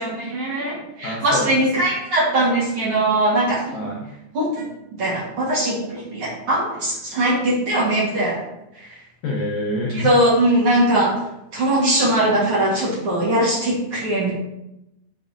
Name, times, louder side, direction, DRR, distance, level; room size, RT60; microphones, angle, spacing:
voice 1, 0.0-3.8 4.3-4.7 5.0-8.4 8.7-8.9 9.9-11.1 11.5-14.4, right 1 dB, 55° right, -6 dB, 1.5 m, -20 dB
voice 2, 1.0-1.8 3.7-4.1 9.2-10.1, left 1 dB, 80° left, -2 dB, 1.9 m, -26 dB
10.5 x 4.6 x 2.7 m, 0.88 s
omnidirectional pair, 5.0 m